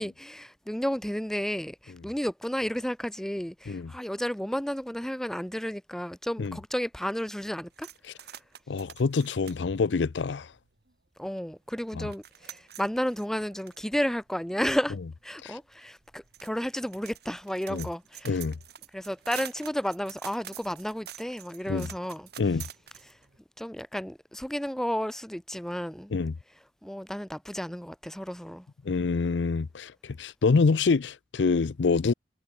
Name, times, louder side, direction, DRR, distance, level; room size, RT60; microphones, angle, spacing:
voice 1, 0.0-7.9 11.2-15.0 15.2-18.3 18.9-22.3 23.6-26.1 26.8-28.7, equal, 5° left, 0.6 m, -32 dB
sound 1, 7.7-10.9 11.4-11.5 11.7-23.4, right 10 dB, 65° right, 2.2 m, -47 dB
voice 2, 8.7-10.5 11.9-12.1 15.4-15.6 17.7-17.9 18.2-18.6 21.7-21.9 22.4-22.6 26.1-26.3 28.8-32.1, left 4 dB, 85° left, 0.5 m, -26 dB
head